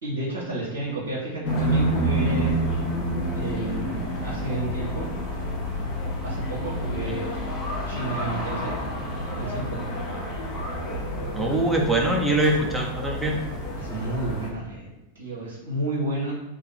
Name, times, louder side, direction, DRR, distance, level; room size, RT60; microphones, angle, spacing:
voice 1, 0.0-2.6 3.3-5.1 6.2-7.3 7.8-8.7 9.4-9.8 13.8-14.9 15.1-16.3, right 2 dB, 65° right, -5 dB, 0.7 m, -31 dB
sound 1, 1.4-14.5, equal, 35° left, 0.7 m, -29 dB
voice 2, 11.3-13.4, right 1 dB, 5° right, 0 dB, 0.6 m, -23 dB
2.6 x 2.5 x 4.0 m, 1.0 s
figure-of-eight pair, 90°, 0 cm